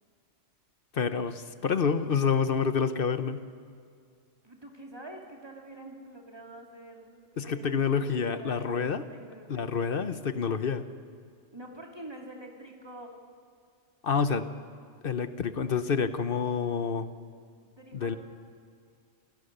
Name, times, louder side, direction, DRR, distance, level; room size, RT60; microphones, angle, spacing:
voice 1, 0.9-3.4 7.4-9.0 9.5-10.9 14.0-14.5 15.0-17.1 17.9-18.2, left 6 dB, 50° left, 12 dB, 1.0 m, -28 dB
voice 2, 4.4-9.7 11.5-13.2 17.6-18.2, right 1 dB, 20° right, 1 dB, 2.8 m, -46 dB
28.0 x 17.0 x 6.7 m, 2.2 s
omnidirectional pair, 1.2 m